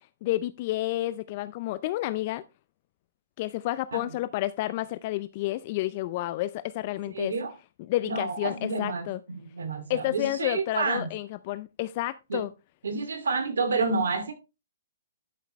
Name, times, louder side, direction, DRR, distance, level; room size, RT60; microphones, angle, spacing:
voice 1, 0.2-2.4 3.4-7.3 7.9-9.2 9.9-12.5, left 16 dB, 40° left, 0.4 m, -30 dB
voice 2, 7.1-7.5 8.0-11.1 12.3-12.5 12.8-14.3, right 4 dB, 75° right, 2.5 m, -29 dB
11.5 x 6.5 x 3.2 m
hypercardioid pair, 130°, 0 cm